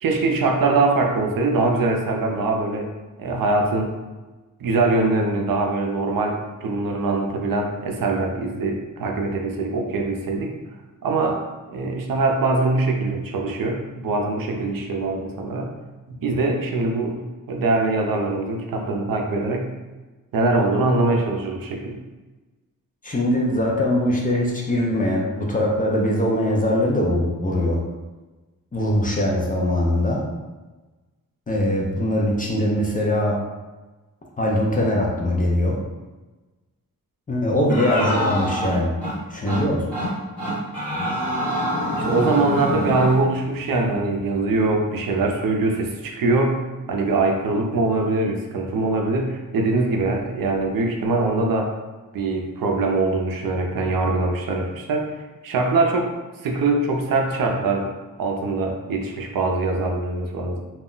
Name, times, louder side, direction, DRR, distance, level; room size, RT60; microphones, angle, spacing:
voice 1, 0.0-2.9 3.2-3.9 4.6-10.5 11.0-11.4 11.7-15.7 16.1-17.2 17.5-19.7 20.3-22.0 41.9-46.6 46.9-51.7 52.1-56.1 56.4-57.9 58.2-60.6, right 3 dB, 70° right, 2 dB, 0.5 m, -22 dB
voice 2, 23.0-27.8 28.7-30.2 31.5-33.4 34.4-35.8 37.3-38.9 39.3-39.9, left 1 dB, 25° left, -3 dB, 0.3 m, -21 dB
sound 1, 37.7-39.1 39.5-39.6 39.9-40.1 40.4-43.2, equal, 5° left, 0.9 m, -25 dB
2.3 x 2.0 x 3.7 m, 1.2 s
wide cardioid pair, 175°, 35 cm